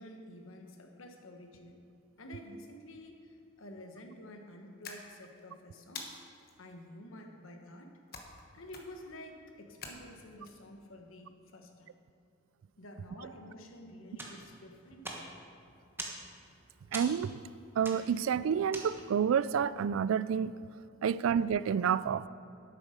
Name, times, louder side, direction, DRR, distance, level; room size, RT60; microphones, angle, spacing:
voice 1, 0.0-1.8 2.2-6.1 6.6-7.9 8.5-11.9 12.8-15.3, left 1 dB, 80° left, 4 dB, 1.3 m, -50 dB
sound 1, 4.8-5.4 6.0-6.5 8.1-8.4 8.7-9.1 9.8-10.5, left 4 dB, 50° left, 1.3 m, -46 dB
sound 2, 14.1-19.3, right 2 dB, 10° right, 1.2 m, -45 dB
voice 2, 16.9-17.3 17.8-20.5 21.0-22.2, right 7 dB, 75° right, 18 dB, 0.3 m, -29 dB
11.0 x 8.4 x 5.2 m, 2.7 s
head